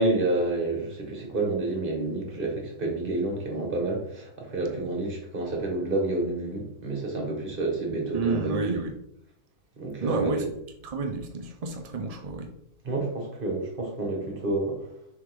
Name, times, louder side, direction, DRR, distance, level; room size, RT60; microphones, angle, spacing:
voice 1, 0.0-8.8 9.8-10.3 12.8-14.8, right 2 dB, 35° right, 1 dB, 1.6 m, -29 dB
voice 2, 8.1-8.9 10.0-10.4 10.8-12.5, right 4 dB, 65° right, 4 dB, 0.3 m, -29 dB
6.7 x 4.3 x 3.6 m, 0.75 s
omnidirectional pair, 1.8 m